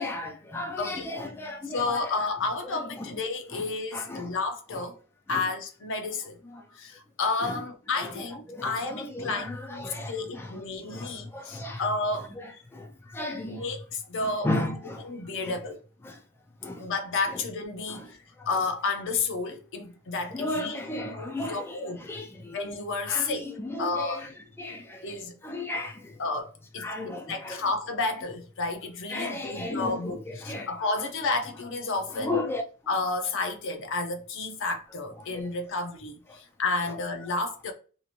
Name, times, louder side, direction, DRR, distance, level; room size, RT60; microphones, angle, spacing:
voice 1, 0.0-2.1 2.6-3.2 3.5-4.3 4.7-4.8 5.3-5.5 6.4-6.6 7.4-7.6 7.9-11.8 12.3-13.6 14.2-15.1 15.4-15.6 16.0-16.2 16.6-16.9 17.3-17.4 17.9-18.1 18.4-18.6 20.3-22.6 23.1-26.1 26.8-27.6 29.1-30.9 32.1-32.6 35.3-35.4 36.9-37.0, left 2 dB, 10° left, 0.3 m, -35 dB
voice 2, 1.7-5.0 5.3-6.4 6.7-12.3 13.5-14.5 15.0-15.8 16.8-18.1 18.5-20.8 21.2-22.0 22.5-23.5 23.8-24.3 25.0-25.4 26.2-32.4 32.9-37.7, left 3 dB, 60° left, 0.6 m, -31 dB
2.8 x 2.5 x 2.8 m
head